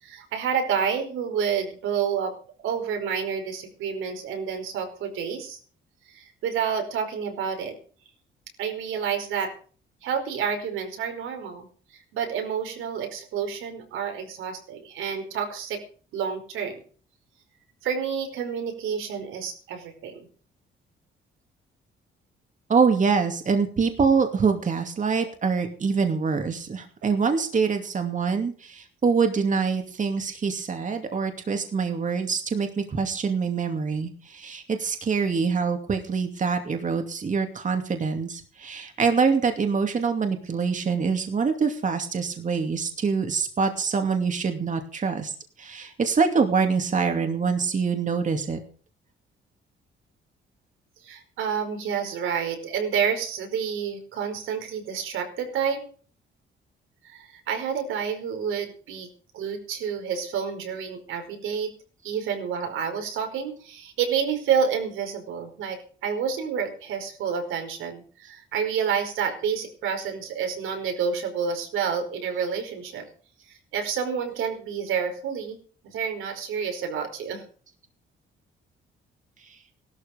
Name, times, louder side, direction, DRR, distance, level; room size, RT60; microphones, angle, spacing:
voice 1, 0.0-2.3 2.6-5.6 6.1-7.8 8.6-9.5 10.0-11.7 11.9-15.8 16.1-16.8 17.8-20.3 51.0-55.8 57.0-59.1 59.3-61.7 62.0-73.1 73.5-75.6 75.9-77.4, right 7 dB, 85° right, 5 dB, 5.1 m, -29 dB
voice 2, 22.7-45.3 45.6-48.6 79.5-79.6, right 5 dB, 40° right, 5 dB, 2.5 m, -25 dB
16.5 x 13.0 x 5.2 m, 0.42 s
cardioid pair, 90°, 20 cm